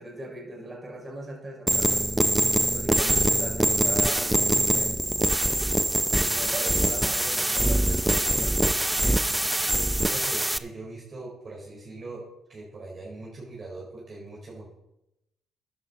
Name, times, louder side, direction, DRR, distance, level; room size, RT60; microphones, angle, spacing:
voice 1, 0.0-2.1 2.7-4.9 6.3-8.6, right 2 dB, 25° right, -1 dB, 5.2 m, -39 dB
sound 1, 1.7-10.6, right 1 dB, 10° right, 0.6 m, -24 dB
voice 2, 10.0-12.2 12.5-14.7, right 2 dB, 40° right, -4 dB, 4.0 m, -41 dB
13.5 x 10.5 x 4.1 m, 0.86 s
cardioid pair, 90°, 0 cm